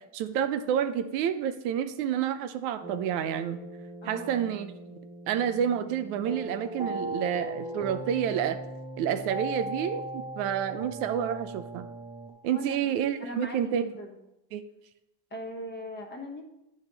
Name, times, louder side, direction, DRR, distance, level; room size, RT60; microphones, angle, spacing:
voice 1, 0.1-3.6 4.1-4.7 5.3-8.6 9.0-11.9 12.4-13.8 14.5-14.6, right 9 dB, 85° right, 9 dB, 0.8 m, -29 dB
sound 1, 2.8-12.3, right 1 dB, 15° right, 0.8 m, -39 dB
voice 2, 4.0-4.4 12.5-14.2 15.3-16.4, left 1 dB, 20° left, 2 dB, 1.3 m, -40 dB
9.2 x 5.1 x 4.0 m, 0.89 s
cardioid pair, 125°, 46 cm